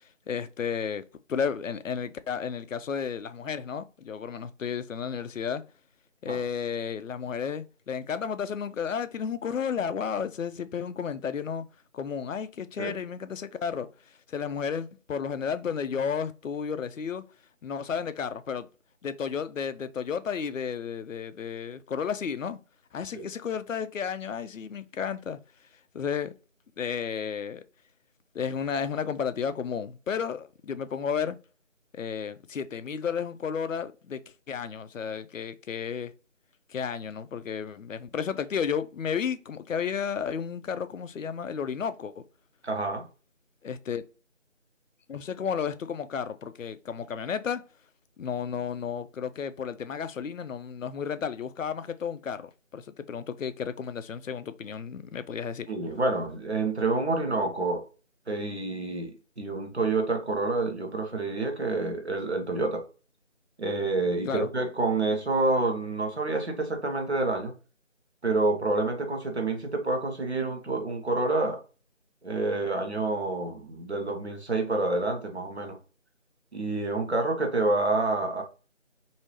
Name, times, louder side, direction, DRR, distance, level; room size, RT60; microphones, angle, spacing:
voice 1, 0.3-1.0 1.3-5.6 6.2-11.7 11.9-13.9 14.3-17.2 17.6-18.7 19.0-22.6 22.9-25.4 25.9-26.3 26.8-27.6 28.3-31.4 31.9-34.2 34.5-36.1 36.7-42.2 43.6-44.0 45.1-47.6 48.2-55.7 64.2-64.5, left 7 dB, 85° left, 0.5 m, -32 dB
voice 2, 42.6-43.0 55.7-57.8 58.3-62.8 63.6-67.5 68.2-71.6 72.2-75.8 76.5-78.4, right 2 dB, 55° right, 1.0 m, -28 dB
3.1 x 2.7 x 2.9 m
figure-of-eight pair, 180°, 38 cm